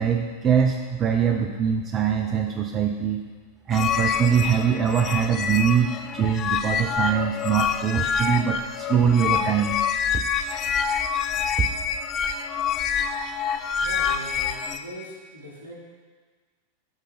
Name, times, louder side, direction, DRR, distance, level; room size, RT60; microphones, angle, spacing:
voice 1, 0.0-3.2 3.7-9.8 11.6-11.7, right 7 dB, 30° right, 3 dB, 0.6 m, -23 dB
sound 1, 3.7-14.8, left 7 dB, 30° left, 0.4 m, -26 dB
voice 2, 13.8-15.7, equal, 75° right, -4 dB, 2.2 m, -40 dB
11.5 x 5.3 x 3.6 m, 1.5 s
figure-of-eight pair, 90°, 0 cm